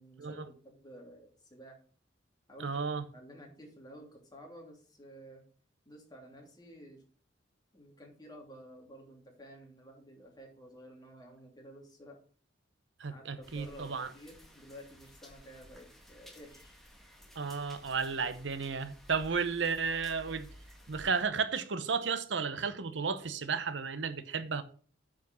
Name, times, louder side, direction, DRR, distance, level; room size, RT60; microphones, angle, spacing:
voice 1, 0.0-1.8 2.5-5.4 5.8-7.0 7.7-12.2 13.1-16.8, equal, 20° left, 2.9 m, -52 dB
voice 2, 2.6-3.0 13.0-14.1 17.4-20.5 20.9-24.6, right 5 dB, 70° right, 0.8 m, -33 dB
sound 1, 13.4-21.2, equal, ahead, 1.8 m, -55 dB
9.3 x 5.1 x 6.3 m
head